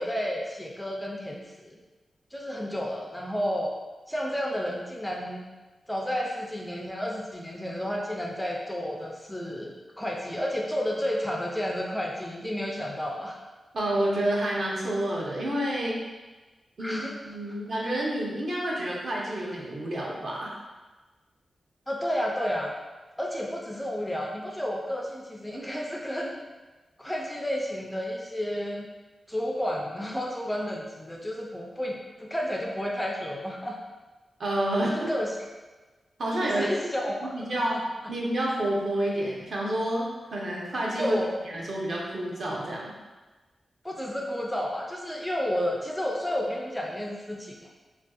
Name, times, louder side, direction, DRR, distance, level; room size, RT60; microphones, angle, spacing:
voice 1, 0.0-1.8 2.3-3.7 4.1-5.4 5.9-13.4 16.8-17.2 17.5-17.6 21.9-22.7 23.2-26.3 27.0-28.9 29.3-33.8 34.9-35.3 36.4-37.2 37.7-37.8 41.0-41.4 43.8-47.7, equal, 5° left, -2 dB, 0.3 m, -31 dB
voice 2, 13.7-16.0 16.8-20.6 34.4-35.1 36.2-36.6 37.2-37.8 38.1-42.9, right 1 dB, 55° right, -4 dB, 0.7 m, -29 dB
3.3 x 2.5 x 2.3 m, 1.2 s
wide cardioid pair, 125°, 0 cm